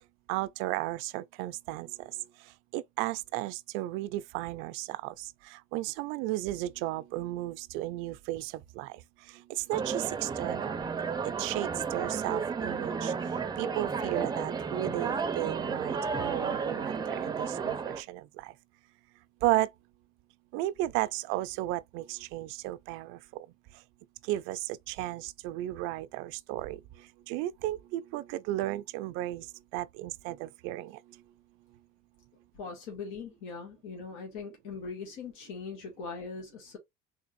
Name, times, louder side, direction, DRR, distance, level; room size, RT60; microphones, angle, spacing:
voice 1, 0.3-2.1 2.7-9.0 9.3-10.8 11.4-13.1 13.6-18.5 19.4-19.7 20.5-23.5 24.3-29.5 29.7-31.0, right 16 dB, 90° right, 0.4 m, -34 dB
sound 1, 9.7-18.0, right 5 dB, 20° right, 0.5 m, -33 dB
voice 2, 32.5-36.8, left 5 dB, 85° left, 1.8 m, -41 dB
3.8 x 3.3 x 2.5 m
cardioid pair, 125°, 20 cm